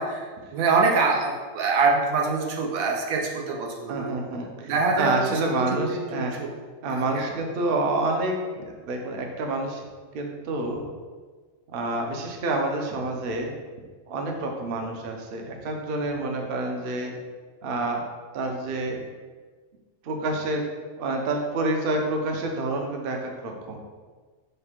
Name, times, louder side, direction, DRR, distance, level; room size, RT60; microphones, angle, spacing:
voice 1, 0.0-4.1 4.6-5.4 5.7-6.5 6.9-7.3, right 4 dB, 85° right, 0 dB, 1.1 m, -25 dB
voice 2, 3.9-6.3 6.8-9.8 10.1-10.8 11.7-13.5 14.1-17.2 17.6-18.0 18.3-19.0 20.0-20.7 21.0-23.8, right 2 dB, 55° right, 2 dB, 0.7 m, -28 dB
4.9 x 2.2 x 4.2 m, 1.4 s
omnidirectional pair, 1.4 m